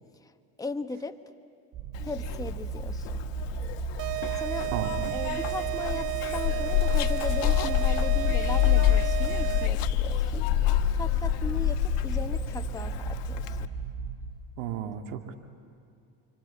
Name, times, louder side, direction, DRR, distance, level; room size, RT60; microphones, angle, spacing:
voice 1, 0.6-1.2 2.0-3.1 4.4-4.7 5.1-10.4 10.9-13.7, left 3 dB, 10° left, 7 dB, 1.2 m, -37 dB
sound 1, 1.7-14.2, right 7 dB, 50° right, 5.5 m, -36 dB
Zipper (clothing), 1.9-13.7, left 13 dB, 65° left, 1.4 m, -28 dB
sound 2, 4.0-9.9, right 20 dB, 90° right, 0.7 m, -33 dB
voice 2, 4.7-5.2 14.6-15.3, right 9 dB, 70° right, 4 dB, 2.4 m, -34 dB
28.5 x 24.5 x 8.6 m, 2.5 s
hypercardioid pair, 80°, 47 cm